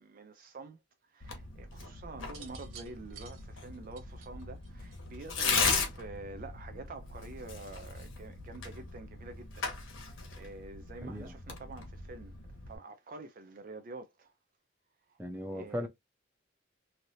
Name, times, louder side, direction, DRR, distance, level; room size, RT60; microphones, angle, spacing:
voice 1, 0.0-14.3 15.1-15.9, right 3 dB, 45° right, 0.4 m, -48 dB
Tearing, 1.2-12.8, left 4 dB, 70° left, 1.1 m, -37 dB
Tinkling Shells, 2.2-5.4 6.4-6.8, right 7 dB, 90° right, 1.1 m, -52 dB
voice 2, 11.0-11.3 15.2-15.9, equal, 10° right, 0.7 m, -37 dB
3.2 x 2.6 x 2.6 m
head